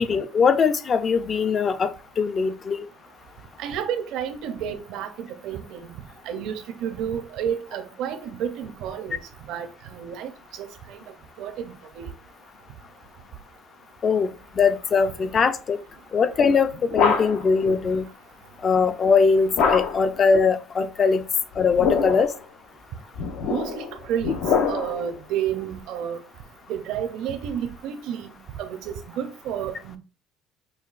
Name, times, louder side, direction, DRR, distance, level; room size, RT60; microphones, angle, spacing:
voice 1, 0.0-1.9 2.2-2.9 14.0-14.3 14.6-15.8 16.1-16.7 16.9-18.1 18.6-21.2 21.6-22.3, left 5 dB, 35° left, 0.4 m, -21 dB
voice 2, 3.6-6.0 6.2-9.2 9.5-10.3 10.6-11.0 11.4-12.1 23.4-24.3 24.7-26.2 26.7-30.0, right 9 dB, 70° right, 0.6 m, -31 dB
sound 1, 16.4-17.6 19.6-20.2 21.5-22.4 23.1-25.1, left 5 dB, 70° left, 0.7 m, -25 dB
5.5 x 2.3 x 2.4 m
cardioid pair, 110°, 0 cm